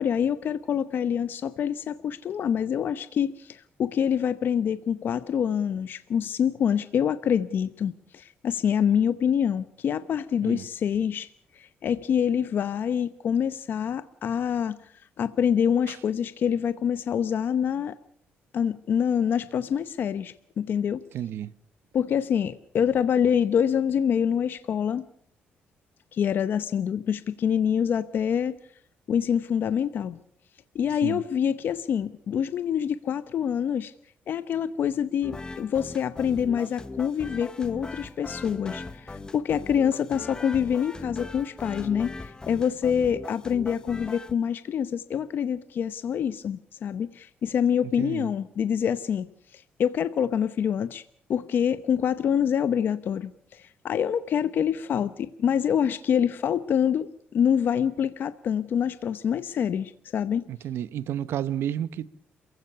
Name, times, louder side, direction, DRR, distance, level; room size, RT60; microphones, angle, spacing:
voice 1, 0.0-11.3 11.5-14.8 15.2-18.0 18.5-21.0 21.9-25.0 26.1-28.6 29.1-30.2 30.7-33.9 34.3-49.3 49.5-51.0 51.3-60.4, left 8 dB, 55° left, 0.8 m, -26 dB
voice 2, 21.1-21.5 31.0-31.2 48.0-48.3 60.5-62.1, right 10 dB, 75° right, 0.9 m, -31 dB
sound 1, 35.2-44.3, left 3 dB, 20° left, 1.0 m, -39 dB
28.0 x 15.5 x 6.8 m
cardioid pair, 130°, 4 cm